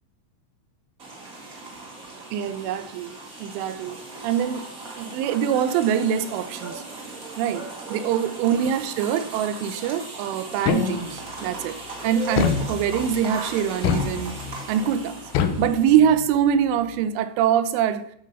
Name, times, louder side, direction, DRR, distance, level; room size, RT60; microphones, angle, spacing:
sound 1, 1.0-16.1, right 3 dB, 60° right, 0.9 m, -38 dB
voice 1, 2.3-6.8 7.4-7.6 7.9-11.8 12.0-14.3 14.7-15.2 15.6-18.1, right 9 dB, 80° right, 3.2 m, -24 dB
sound 2, 10.7-11.3 12.4-13.2 13.8-14.6 15.3-16.4, left 7 dB, 85° left, 2.1 m, -26 dB
12.5 x 6.6 x 5.5 m
omnidirectional pair, 5.6 m